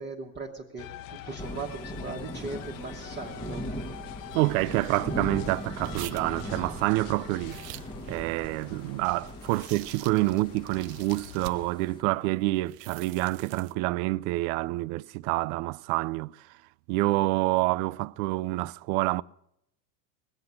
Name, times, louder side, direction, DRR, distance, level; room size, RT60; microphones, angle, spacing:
voice 1, 0.0-3.6, right 3 dB, 20° right, 1.3 m, -39 dB
sound 1, 0.8-11.7, left 13 dB, 55° left, 0.7 m, -46 dB
Thunder / Rain, 1.4-12.0, equal, 10° left, 1.1 m, -40 dB
voice 2, 4.3-7.6 8.1-16.5 16.9-19.2, right 20 dB, 60° right, 0.5 m, -27 dB
sound 2, 4.3-11.9 12.5-13.7, right 14 dB, 90° right, 0.9 m, -46 dB
20.0 x 7.9 x 8.3 m
supercardioid pair, 145°, 48 cm